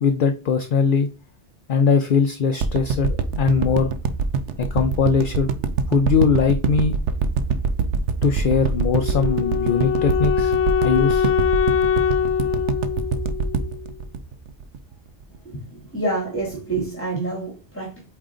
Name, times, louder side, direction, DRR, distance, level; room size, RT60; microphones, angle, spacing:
voice 1, 0.0-1.1 1.7-3.9 4.6-5.5 5.9-6.9 8.2-10.5 10.8-11.3, left 6 dB, 55° left, 0.7 m, -20 dB
sound 1, 2.6-14.9 15.3-15.4, right 5 dB, 90° right, 1.0 m, -23 dB
Wind instrument woodwind instrument, 8.9-13.9, left 8 dB, 90° left, 0.9 m, -23 dB
voice 2, 15.4-18.1, right 2 dB, 10° left, 2.5 m, -28 dB
8.6 x 3.2 x 3.8 m
omnidirectional pair, 1.1 m